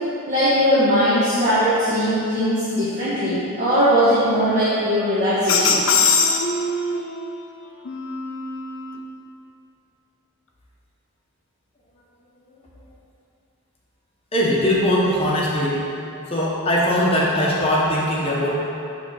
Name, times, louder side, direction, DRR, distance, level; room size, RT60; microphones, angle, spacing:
voice 1, 0.3-5.8, equal, 30° right, -12 dB, 1.4 m, -19 dB
sound 1, 5.5-7.2 7.9-9.0, left 4 dB, 60° left, 0.6 m, -21 dB
voice 2, 14.3-15.8 16.3-18.6, equal, 25° left, -5 dB, 1.1 m, -20 dB
7.2 x 3.5 x 6.3 m, 2.7 s
head